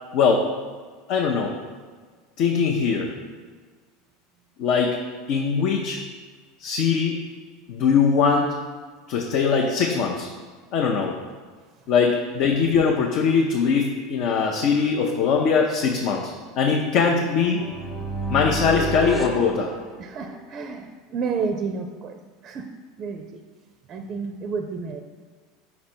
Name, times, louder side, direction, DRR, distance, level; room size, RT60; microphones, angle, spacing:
voice 1, 0.1-0.5 1.1-1.5 2.4-3.1 4.6-5.0 5.3-6.0 6.6-7.2 7.7-8.5 9.1-10.3 10.7-11.1 11.9-17.6 18.3-19.7, left 5 dB, 60° left, 1 dB, 0.5 m, -21 dB
sound 1, 17.4-20.4, right 2 dB, 5° left, 0.9 m, -31 dB
voice 2, 20.0-22.7 23.0-23.4 23.9-25.0, right 5 dB, 40° right, 6 dB, 0.4 m, -31 dB
5.2 x 4.2 x 4.4 m, 1.5 s
hypercardioid pair, 90°, 0 cm